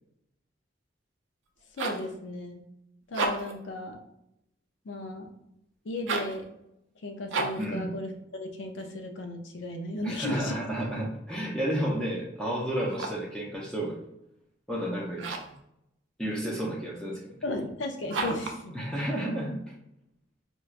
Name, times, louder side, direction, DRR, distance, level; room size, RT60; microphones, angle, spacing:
sound 1, 1.5-2.1 3.0-3.6 6.0-6.4 7.3-7.7 12.8-13.3 15.2-15.6 18.1-18.6, right 3 dB, 80° right, 0.5 m, -32 dB
voice 1, 1.7-2.6 3.1-4.0 4.8-5.3 5.8-6.5 7.0-10.6 17.4-18.9, left 1 dB, 75° left, 5 dB, 0.5 m, -35 dB
voice 2, 7.6-7.9 10.0-14.0 14.7-15.3 16.2-17.2 18.7-19.6, equal, 5° left, -4 dB, 0.5 m, -31 dB
4.3 x 2.2 x 2.4 m, 0.81 s
head